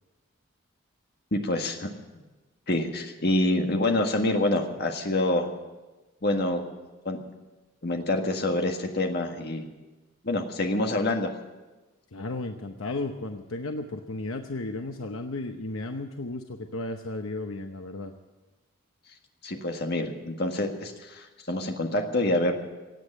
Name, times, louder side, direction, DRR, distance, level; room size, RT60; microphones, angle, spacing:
voice 1, 1.3-1.9 2.7-5.5 6.2-6.7 7.1-7.2 7.8-9.6 10.2-11.3 19.4-22.6, left 1 dB, 50° left, 4 dB, 1.7 m, -26 dB
voice 2, 12.1-18.1, left 2 dB, 75° left, 5 dB, 0.9 m, -34 dB
17.0 x 8.6 x 9.9 m, 1.2 s
head